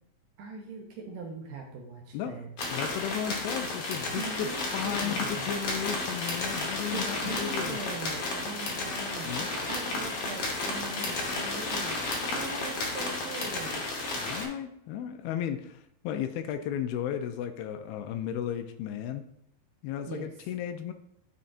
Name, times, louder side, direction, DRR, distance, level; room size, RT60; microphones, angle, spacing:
voice 1, 0.4-2.5 4.1-5.5 6.9-12.0 12.3-13.8 20.1-20.3, right 3 dB, 75° right, 0 dB, 2.1 m, -41 dB
voice 2, 2.1-7.8 9.2-9.7 14.2-19.3 19.8-20.9, left 9 dB, 85° left, 9 dB, 2.3 m, -35 dB
sound 1, 2.6-14.5, left 2 dB, 70° left, 1.5 m, -32 dB
11.0 x 4.1 x 2.5 m, 0.75 s
omnidirectional pair, 4.4 m